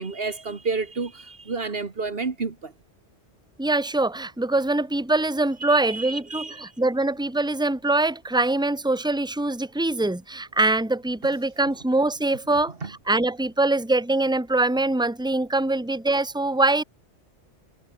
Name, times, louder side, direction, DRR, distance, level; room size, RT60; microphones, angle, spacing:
voice 1, 0.0-2.7 5.6-6.7 12.8-12.9, right 4 dB, 55° right, 1.9 m, -30 dB
voice 2, 3.6-12.7 13.1-16.8, right 2 dB, 5° right, 1.7 m, -23 dB
omnidirectional pair, 1.2 m